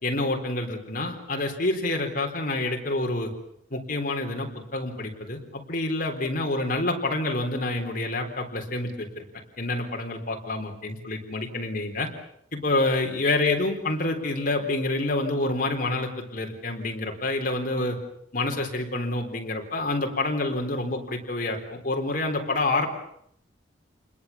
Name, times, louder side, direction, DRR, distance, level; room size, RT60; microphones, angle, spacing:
voice 1, 0.0-3.3 3.7-9.2 9.6-12.1 12.5-18.0 18.3-22.9, left 2 dB, 50° left, 2 dB, 4.1 m, -27 dB
29.0 x 21.0 x 7.3 m, 0.72 s
head